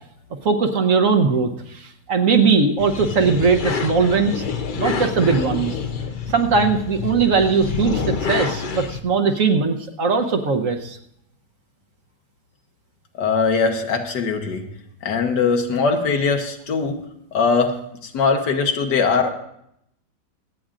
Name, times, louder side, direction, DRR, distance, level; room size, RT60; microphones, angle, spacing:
voice 1, 0.4-4.4 4.8-5.7 6.3-11.0, right 5 dB, 55° right, 5 dB, 1.2 m, -19 dB
sound 1, 2.8-9.0, left 5 dB, 60° left, 0.5 m, -27 dB
voice 2, 13.2-14.6 15.0-17.0 17.3-17.7 18.0-19.3, left 5 dB, 80° left, 4 dB, 1.7 m, -20 dB
25.5 x 8.6 x 2.5 m, 0.75 s
omnidirectional pair, 1.8 m